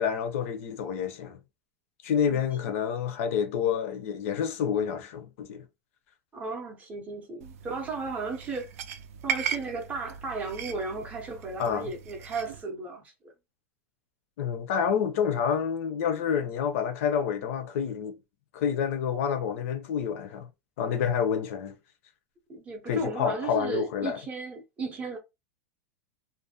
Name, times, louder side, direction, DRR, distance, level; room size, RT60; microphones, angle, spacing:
voice 1, 0.0-1.4 2.0-5.6 11.6-11.9 14.4-18.2 18.5-20.5 20.8-21.7 22.9-24.2, left 7 dB, 60° left, 0.6 m, -28 dB
voice 2, 6.3-8.7 9.2-13.3 22.5-25.2, right 3 dB, 20° right, 0.5 m, -35 dB
sound 1, 7.4-12.6, right 8 dB, 70° right, 0.4 m, -37 dB
2.4 x 2.1 x 2.7 m
supercardioid pair, 155°, 8 cm